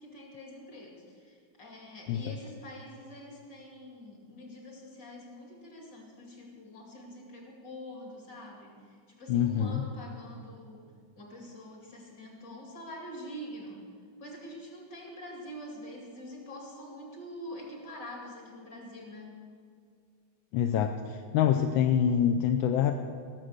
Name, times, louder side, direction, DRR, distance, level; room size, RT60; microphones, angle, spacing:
voice 1, 0.0-10.9 11.2-13.9 14.2-19.3, equal, 60° left, -1 dB, 3.2 m, -45 dB
voice 2, 9.3-9.8 20.5-22.9, left 9 dB, 85° left, 6 dB, 1.4 m, -26 dB
16.5 x 7.6 x 6.5 m, 2.1 s
omnidirectional pair, 2.1 m